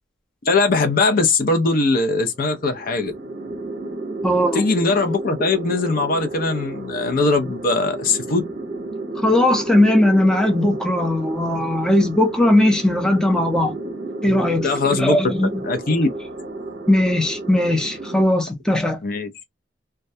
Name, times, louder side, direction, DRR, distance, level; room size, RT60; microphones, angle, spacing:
voice 1, 0.5-3.1 4.5-8.4 14.6-15.2 15.7-16.1 19.0-19.3, left 3 dB, 50° left, 0.5 m, -20 dB
sound 1, 2.3-18.2, right 2 dB, 50° right, 0.6 m, -32 dB
voice 2, 4.2-4.6 9.2-13.7 14.2-15.6 16.9-19.0, left 1 dB, 5° left, 0.5 m, -18 dB
2.2 x 2.1 x 2.6 m
head